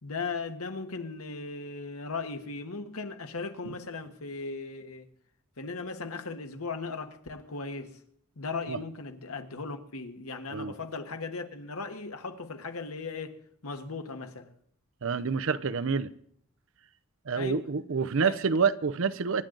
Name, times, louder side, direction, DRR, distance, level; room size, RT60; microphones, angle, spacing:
voice 1, 0.0-5.1 5.6-8.0 8.4-13.4 13.6-14.5 17.3-17.6 18.2-18.4, left 4 dB, 85° left, 1.4 m, -37 dB
voice 2, 15.0-16.1 17.3-19.5, right 5 dB, 65° right, 0.6 m, -28 dB
25.5 x 10.5 x 3.9 m
head